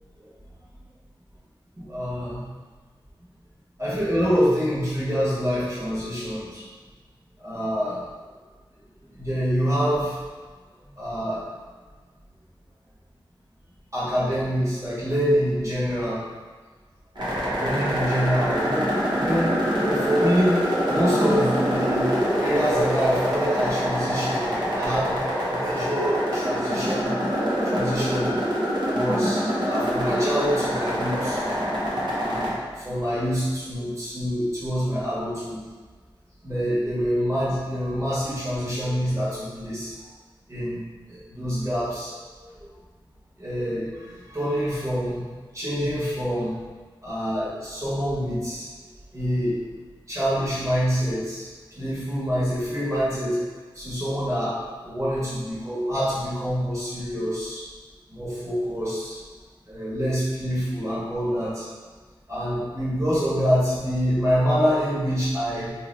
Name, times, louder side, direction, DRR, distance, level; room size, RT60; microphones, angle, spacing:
voice 1, 1.8-2.4 3.8-6.6 7.4-8.0 9.1-10.2 11.0-11.4 13.9-16.2 17.6-20.6 20.9-24.4 24.7-25.1 25.5-28.4 28.9-31.4 32.2-35.6 36.4-39.9 40.5-40.8 41.1-42.7 43.4-45.3 45.5-46.5 47.0-48.7 49.1-49.6 50.1-53.4 53.7-57.6 58.1-59.2 59.7-61.7 62.3-65.7, equal, 35° right, -10 dB, 1.5 m, -26 dB
sound 1, 17.2-32.5, equal, 55° right, 1.0 m, -25 dB
3.0 x 2.8 x 4.0 m, 1.4 s
wide cardioid pair, 90°, 9 cm